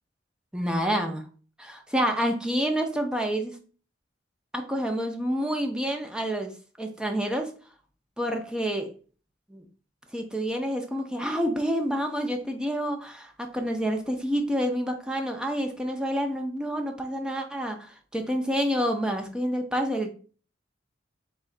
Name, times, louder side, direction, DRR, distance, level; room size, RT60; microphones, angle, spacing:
voice 1, 0.5-1.3 1.6-3.6 4.5-6.5 6.8-7.5 8.2-8.9 9.5-9.6 10.1-20.1, equal, 5° right, 3 dB, 0.6 m, -28 dB
3.7 x 3.0 x 4.4 m, 0.40 s
head